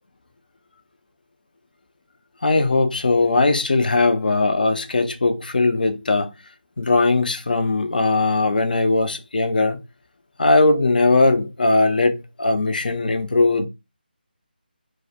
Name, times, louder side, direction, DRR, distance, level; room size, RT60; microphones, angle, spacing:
voice 1, 2.4-6.3 6.8-9.8 10.4-13.7, left 3 dB, 55° left, 0.5 m, -19 dB
2.3 x 2.1 x 2.8 m
figure-of-eight pair, 155°, 6 cm